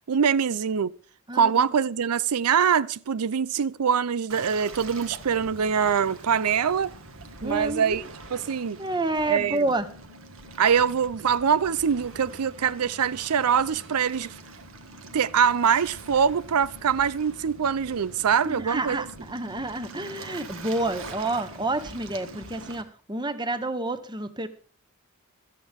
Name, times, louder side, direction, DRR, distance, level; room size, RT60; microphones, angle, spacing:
voice 1, 0.1-0.9 1.3-6.9 7.4-8.0 8.3-8.8 9.3-9.7 10.6-14.4 15.1-19.0, right 7 dB, 90° right, 0.5 m, -23 dB
voice 2, 1.3-1.7 7.4-8.0 8.8-9.9 18.4-24.5, right 2 dB, 20° right, 1.1 m, -29 dB
Waves surf, 4.3-22.8, right 2 dB, 65° right, 1.9 m, -44 dB
16.5 x 13.0 x 3.6 m
head